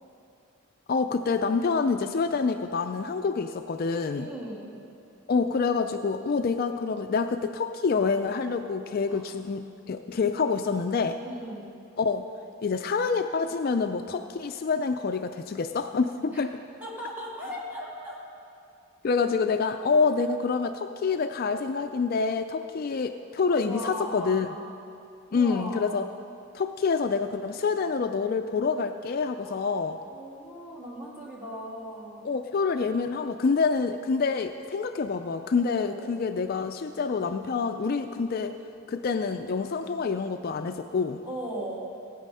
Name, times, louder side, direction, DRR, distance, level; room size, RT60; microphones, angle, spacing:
voice 1, 0.9-4.3 5.3-11.2 12.0-12.3 12.6-16.5 19.0-24.5 25.3-26.1 26.5-30.0 32.2-38.6 38.9-41.2, left 4 dB, 45° left, 8 dB, 0.4 m, -27 dB
voice 2, 4.2-4.7 9.1-9.2 11.2-11.7 16.3-16.5 16.8-18.2 23.6-24.7 25.3-26.0 29.4-29.6 30.1-32.3 35.7-36.2 41.2-41.8, equal, 10° right, -5 dB, 2.5 m, -38 dB
16.5 x 9.1 x 5.5 m, 2.5 s
head